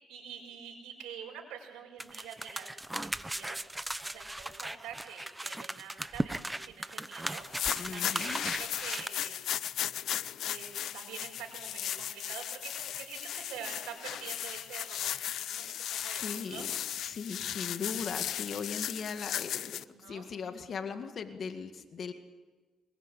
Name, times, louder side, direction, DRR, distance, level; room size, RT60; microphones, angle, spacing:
voice 1, 0.1-2.7 3.3-3.6 4.0-7.4 7.9-9.4 10.5-10.7 10.9-16.7 19.9-20.2, right 8 dB, 90° right, -2 dB, 5.8 m, -46 dB
sound 1, 2.0-9.1, right 1 dB, 10° right, 1.0 m, -37 dB
sound 2, 7.3-19.8, left 11 dB, 75° left, 0.8 m, -36 dB
voice 2, 7.8-8.5 15.6-16.7 17.0-19.8 20.1-22.1, left 6 dB, 55° left, 7 dB, 2.0 m, -39 dB
24.0 x 22.0 x 8.5 m, 1.3 s
cardioid pair, 90°, 0 cm